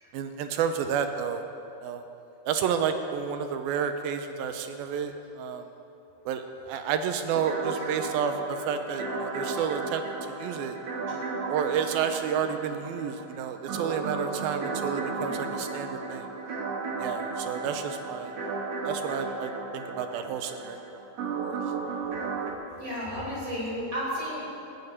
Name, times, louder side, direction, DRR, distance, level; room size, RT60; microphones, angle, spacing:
voice 1, 0.1-1.4 1.8-2.0 2.5-5.7 6.3-10.8 11.5-16.3 17.0-18.4 18.8-21.0 21.4-21.6, right 7 dB, 80° right, 7 dB, 2.5 m, -30 dB
sound 1, 7.3-22.5, right 3 dB, 55° right, 1.8 m, -34 dB
voice 2, 22.8-24.6, equal, 30° right, -6 dB, 4.7 m, -33 dB
14.5 x 8.8 x 9.7 m, 2.8 s
omnidirectional pair, 4.6 m